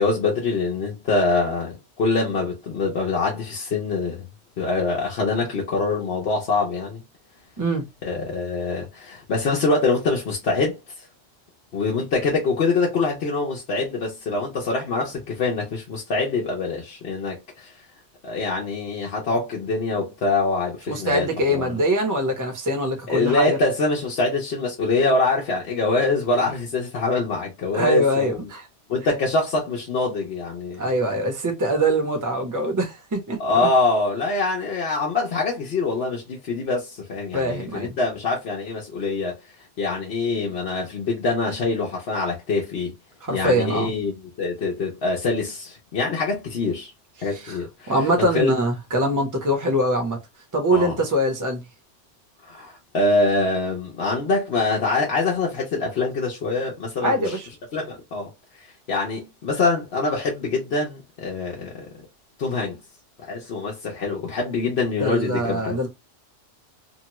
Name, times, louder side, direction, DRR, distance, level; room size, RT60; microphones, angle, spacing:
voice 1, 0.0-4.2 4.6-7.0 8.0-10.8 11.7-17.7 18.2-21.7 23.1-28.4 28.9-30.8 33.4-39.3 39.8-42.9 43.3-46.9 47.2-47.9 48.3-48.5 50.7-51.0 52.4-57.4 57.7-58.3 58.9-61.9 62.4-62.8 63.2-65.8, left 3 dB, 60° left, 1.0 m, -24 dB
voice 2, 20.9-23.6 27.7-28.7 30.8-33.7 37.3-38.0 43.2-43.9 47.3-47.6 47.9-50.2 50.5-51.6 57.0-57.5 65.0-65.9, right 1 dB, 20° right, 0.7 m, -23 dB
2.9 x 2.2 x 2.9 m
omnidirectional pair, 1.2 m